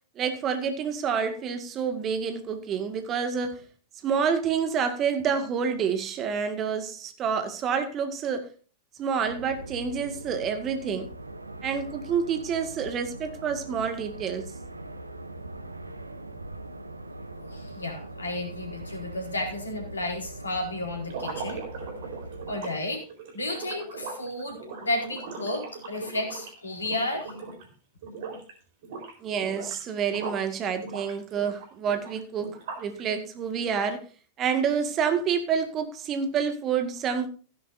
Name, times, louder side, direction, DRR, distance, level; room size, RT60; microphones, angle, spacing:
voice 1, 0.2-3.6 4.0-8.5 9.0-11.1 11.6-14.5 29.2-34.0 34.4-37.3, right 6 dB, 30° right, 1.9 m, -28 dB
sound 1, 9.2-22.6, right 2 dB, 80° right, 1.0 m, -41 dB
voice 2, 17.4-21.6 22.5-23.1 23.3-27.3, left 1 dB, 75° left, 4.3 m, -32 dB
sound 2, 21.0-27.7 28.0-28.5 28.8-30.5 30.8-33.0, right 4 dB, 55° right, 4.2 m, -39 dB
16.5 x 10.5 x 2.7 m
figure-of-eight pair, 90°, 0 cm